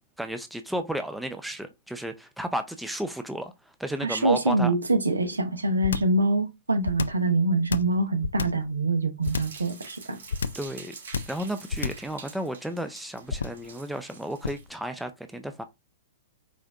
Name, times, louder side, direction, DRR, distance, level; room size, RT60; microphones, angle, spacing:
voice 1, 0.2-3.5 3.8-4.7 10.5-10.9 11.3-15.6, right 1 dB, 5° right, 0.4 m, -33 dB
voice 2, 4.0-10.2, right 2 dB, 90° right, 0.8 m, -25 dB
sound 1, 5.8-6.2 6.8-7.3 7.7-8.7 9.2-9.6 10.3-10.7 11.1-11.4 11.7-12.1 13.3-13.7 14.4-14.7, left 5 dB, 80° left, 0.3 m, -29 dB
sound 2, 9.2-14.6, right 5 dB, 70° right, 2.3 m, -47 dB
5.0 x 2.6 x 2.4 m
hypercardioid pair, 115°, 0 cm